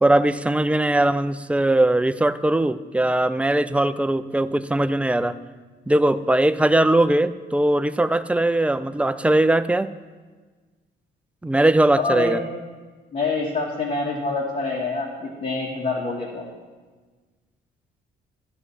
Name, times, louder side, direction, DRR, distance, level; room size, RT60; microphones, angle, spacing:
voice 1, 0.0-5.4 5.9-9.9 11.4-12.4, right 1 dB, 5° right, 12 dB, 0.4 m, -20 dB
voice 2, 12.0-12.4 13.1-16.4, left 3 dB, 45° left, -3 dB, 1.9 m, -26 dB
13.5 x 7.8 x 4.2 m, 1.4 s
cardioid pair, 90°, 20 cm